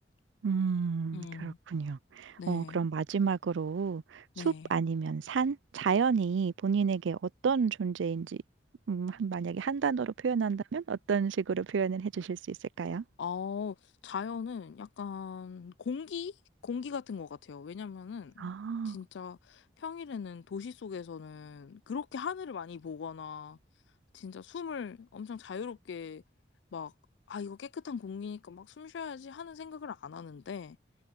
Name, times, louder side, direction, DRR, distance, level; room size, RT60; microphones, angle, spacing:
voice 1, 0.4-8.4 8.9-13.0 18.4-19.0, right 6 dB, 80° right, 0.4 m, -31 dB
voice 2, 1.1-1.6 2.4-2.8 4.4-4.7 13.2-13.8 14.0-16.4 16.6-18.5 18.8-23.6 24.1-26.2 26.7-26.9 27.3-30.8, left 6 dB, 70° left, 0.4 m, -39 dB
head